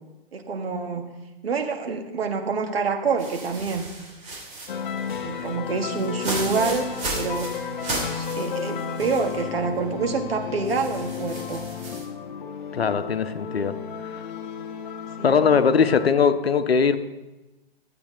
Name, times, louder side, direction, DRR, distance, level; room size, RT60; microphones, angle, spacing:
voice 1, 0.3-1.2 1.4-3.9 5.2-6.9 7.1-7.5 8.1-11.7 15.2-15.4, right 5 dB, 75° right, 4 dB, 1.5 m, -27 dB
sound 1, 3.2-9.4 9.8-9.9 10.7-12.0, right 2 dB, 25° right, 3.4 m, -35 dB
sound 2, 4.7-16.1, left 7 dB, 55° left, 1.0 m, -33 dB
voice 2, 12.7-13.7 14.0-14.2 15.2-17.0, left 6 dB, 85° left, 10 dB, 0.9 m, -20 dB
13.0 x 8.5 x 3.8 m, 1.1 s
hypercardioid pair, 125°, 30 cm